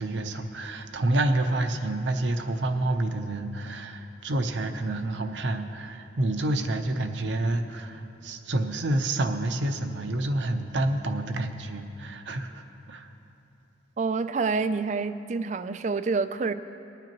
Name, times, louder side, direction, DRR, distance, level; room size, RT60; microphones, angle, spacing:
voice 1, 0.0-12.6 12.9-13.1, right 1 dB, 75° right, 6 dB, 0.7 m, -28 dB
voice 2, 14.0-16.5, right 4 dB, 40° right, 12 dB, 0.3 m, -27 dB
20.0 x 9.0 x 3.0 m, 2.8 s
head